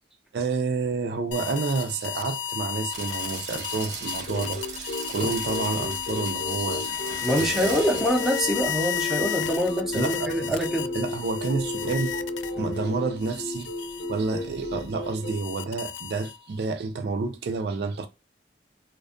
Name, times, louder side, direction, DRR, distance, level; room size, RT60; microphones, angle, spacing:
voice 1, 0.3-7.0 7.4-8.0 9.9-10.6 10.9-12.1 12.6-18.1, right 4 dB, 60° right, 0.4 m, -29 dB
sound 1, 1.3-12.8 13.2-16.6, left 9 dB, 85° left, 0.3 m, -33 dB
sound 2, 2.9-8.4, right 4 dB, 40° right, 0.8 m, -39 dB
sound 3, 4.1-15.3, left 2 dB, 65° left, 1.3 m, -34 dB
voice 2, 7.2-10.9 12.6-12.7, equal, ahead, 0.6 m, -25 dB
2.5 x 2.3 x 2.3 m
head